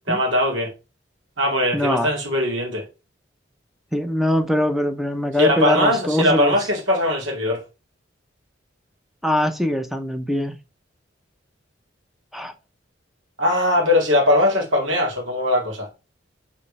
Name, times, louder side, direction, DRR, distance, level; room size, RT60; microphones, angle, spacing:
voice 1, 0.1-0.7 1.4-2.9 5.4-7.6 13.4-15.9, left 1 dB, 90° right, 2.5 m, -20 dB
voice 2, 1.7-2.1 3.9-6.6 9.2-10.6 12.3-12.5, left 1 dB, ahead, 0.8 m, -22 dB
5.0 x 4.2 x 5.5 m
head